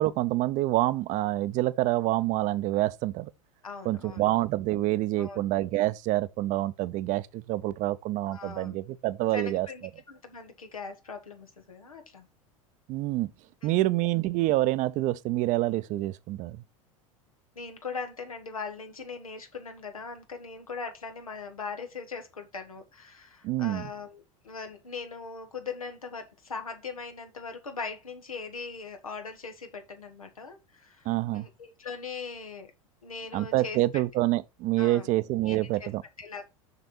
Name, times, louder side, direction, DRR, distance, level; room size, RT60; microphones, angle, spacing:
voice 1, 0.0-3.3 3.8-9.7 12.9-13.3 13.6-16.6 23.4-23.9 31.0-31.5 33.3-36.0, right 16 dB, 45° right, 0.7 m, -27 dB
voice 2, 3.6-4.3 5.2-5.5 8.3-8.8 9.3-12.3 13.6-14.0 17.6-32.7 33.0-34.0 34.8-35.1 35.5-35.9 36.2-36.4, left 5 dB, 90° left, 1.7 m, -40 dB
6.8 x 6.1 x 4.4 m
hypercardioid pair, 85°, 18 cm